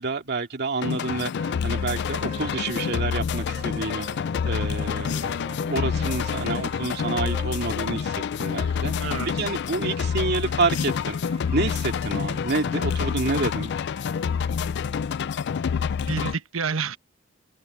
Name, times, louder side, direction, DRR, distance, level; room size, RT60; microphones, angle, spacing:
voice 1, 0.0-4.1 4.4-8.9 9.4-11.2 11.5-13.7, right 3 dB, 55° right, 2.5 m, -28 dB
sound 1, 0.8-16.3, left 6 dB, 55° left, 0.4 m, -27 dB
sound 2, 1.3-15.5, right 3 dB, 30° right, 4.3 m, -46 dB
sound 3, 4.1-16.0, equal, 5° left, 7.7 m, -55 dB
voice 2, 9.0-9.6 16.1-17.0, right 5 dB, 80° right, 1.2 m, -29 dB
head